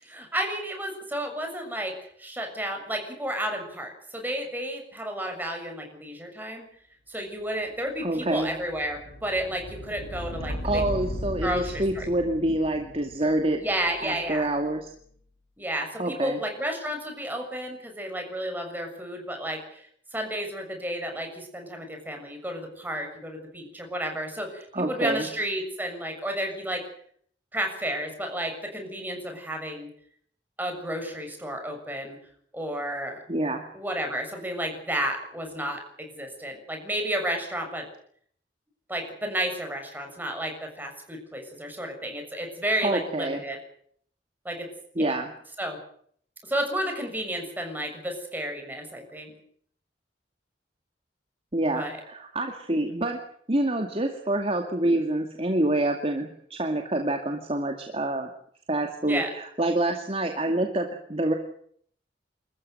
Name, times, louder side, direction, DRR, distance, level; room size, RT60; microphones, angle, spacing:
voice 1, 0.0-1.9 2.2-6.7 7.1-10.8 11.4-12.1 13.5-14.5 15.6-26.8 27.5-29.9 30.6-32.2 32.5-33.2 33.7-37.9 38.9-43.6 44.5-44.7 45.0-45.2 45.6-45.8 46.4-49.3 51.7-52.0 59.0-59.3, right 1 dB, 10° right, 3 dB, 6.9 m, -32 dB
sound 1, 8.0-14.9, left 1 dB, 70° left, 7.3 m, -37 dB
voice 2, 8.0-8.5 10.4-13.6 14.0-14.9 16.0-16.4 24.7-25.3 33.3-33.6 42.8-43.4 45.0-45.3 51.5-53.2 53.5-58.3 58.7-61.3, right 1 dB, 35° right, 4 dB, 2.2 m, -27 dB
27.0 x 14.5 x 9.1 m, 0.62 s
head